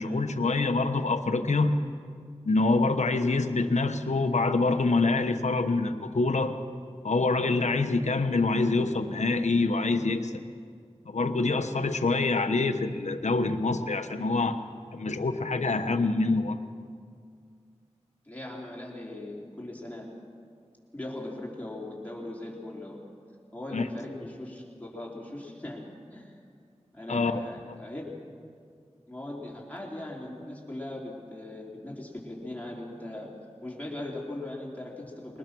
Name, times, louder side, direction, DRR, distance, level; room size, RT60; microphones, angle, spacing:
voice 1, 0.0-1.8 2.4-6.6 7.0-10.4 11.1-14.6 14.9-16.6 23.7-23.9 27.1-27.4, left 3 dB, 80° left, 8 dB, 1.1 m, -26 dB
voice 2, 18.3-20.1 20.9-23.0 23.5-26.3 26.9-28.2 29.1-33.3 33.6-35.4, left 1 dB, 15° left, -3 dB, 4.3 m, -39 dB
23.0 x 19.5 x 6.2 m, 2.2 s
wide cardioid pair, 55°, 12 cm